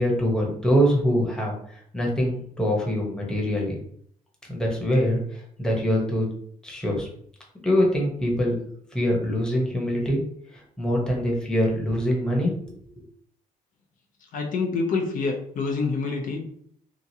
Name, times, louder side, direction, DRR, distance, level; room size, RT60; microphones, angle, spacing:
voice 1, 0.0-3.8 4.5-6.3 6.6-7.1 7.6-8.6 8.9-10.2 10.5-12.7, equal, 5° left, -2 dB, 0.8 m, -24 dB
voice 2, 14.3-16.5, left 4 dB, 65° left, 1 dB, 0.6 m, -26 dB
2.9 x 2.4 x 2.7 m, 0.63 s
cardioid pair, 115°, 15 cm